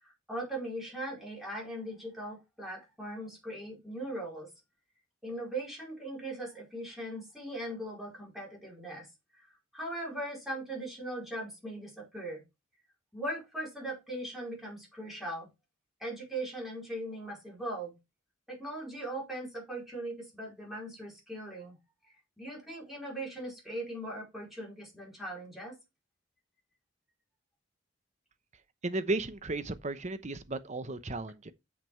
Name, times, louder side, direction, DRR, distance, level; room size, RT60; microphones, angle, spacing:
voice 1, 0.0-4.5 5.2-9.1 9.7-12.4 13.1-15.5 16.0-18.0 18.5-21.8 22.1-25.8, right 1 dB, ahead, 4.6 m, -39 dB
voice 2, 28.8-31.5, right 2 dB, 35° right, 0.9 m, -34 dB
7.6 x 6.0 x 4.5 m
head